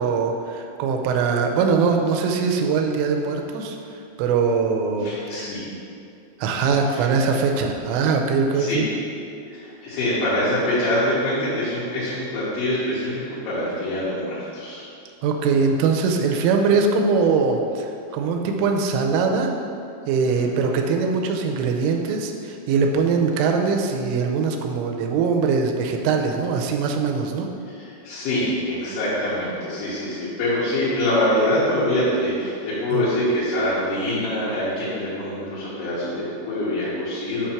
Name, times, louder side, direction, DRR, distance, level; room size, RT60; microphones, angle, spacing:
voice 1, 0.0-3.8 4.2-5.5 6.4-8.8 15.2-17.9 18.1-19.5 20.1-27.5 32.9-33.0, right 5 dB, 90° right, 2 dB, 3.1 m, -22 dB
voice 2, 5.0-5.6 6.9-7.1 8.5-8.8 9.5-14.8 15.5-15.6 20.3-20.6 27.7-37.5, left 1 dB, 80° left, -11 dB, 3.7 m, -25 dB
8.3 x 2.8 x 5.7 m, 2.6 s
omnidirectional pair, 5.5 m